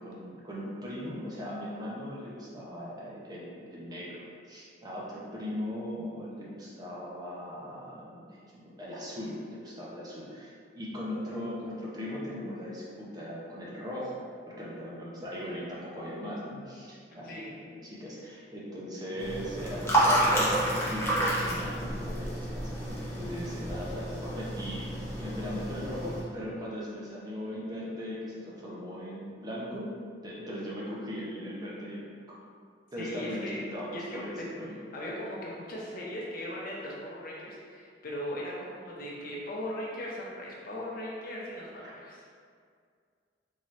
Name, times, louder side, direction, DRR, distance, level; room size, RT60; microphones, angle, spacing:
voice 1, 0.0-29.9 30.2-32.1 32.9-34.7 41.8-41.9, equal, 20° right, -6 dB, 0.6 m, -39 dB
sound 1, 19.2-26.2, right 1 dB, 15° left, 0.7 m, -30 dB
voice 2, 33.0-33.6 33.9-34.3 34.9-42.3, left 1 dB, 50° left, -5 dB, 0.7 m, -38 dB
3.7 x 2.8 x 3.1 m, 2.1 s
head